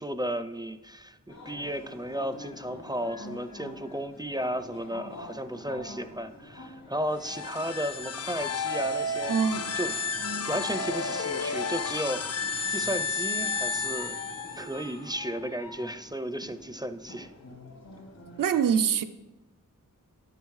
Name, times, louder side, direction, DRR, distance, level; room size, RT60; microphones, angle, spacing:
voice 1, 0.0-9.4 9.8-10.0 10.5-12.3 12.7-14.2 14.5-17.3, equal, 15° right, 0.4 m, -34 dB
sound 1, 1.3-18.4, left 2 dB, 85° left, 2.5 m, -45 dB
sound 2, 7.1-14.8, left 4 dB, 50° left, 0.5 m, -32 dB
voice 2, 9.3-9.7 18.4-19.0, right 7 dB, 75° right, 0.5 m, -24 dB
10.5 x 9.0 x 3.2 m
wide cardioid pair, 55°, 33 cm